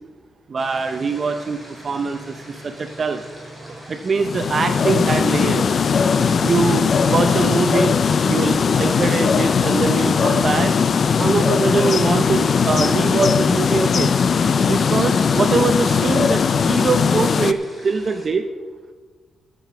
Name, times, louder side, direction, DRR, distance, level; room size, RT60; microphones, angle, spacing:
voice 1, 0.5-3.2 3.6-5.8 6.4-8.0 8.2-10.7 11.2-14.1 14.7-18.5, right 4 dB, 40° right, 7 dB, 0.7 m, -23 dB
sound 1, 0.6-18.3, equal, 5° left, 4.4 m, -42 dB
sound 2, 4.1-17.5, left 6 dB, 50° left, 0.5 m, -19 dB
14.0 x 7.7 x 5.8 m, 1.4 s
cardioid pair, 115°, 0 cm